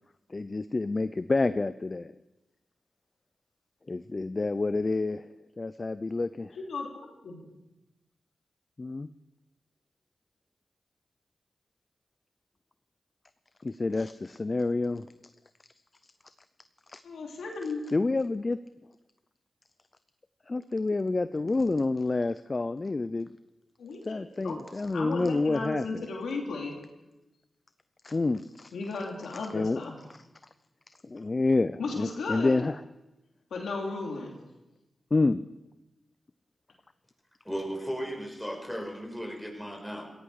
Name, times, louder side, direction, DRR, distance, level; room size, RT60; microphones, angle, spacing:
voice 1, 0.3-2.1 3.9-5.3 5.6-6.6 8.8-9.1 13.6-15.1 16.9-17.0 17.9-18.6 20.5-23.3 24.0-26.0 28.0-28.7 29.5-29.8 30.1-30.2 31.0-32.8 35.1-35.4, left 3 dB, 40° left, 13 dB, 0.5 m, -28 dB
voice 2, 6.5-6.9 7.2-7.5 17.0-17.8 23.8-24.6 24.9-26.7 28.7-30.0 31.8-32.6 33.5-34.3, left 3 dB, 85° left, 0 dB, 2.8 m, -35 dB
voice 3, 37.4-40.1, equal, 5° left, 1 dB, 5.7 m, -36 dB
17.5 x 15.5 x 4.9 m, 0.98 s
cardioid pair, 40°, 0 cm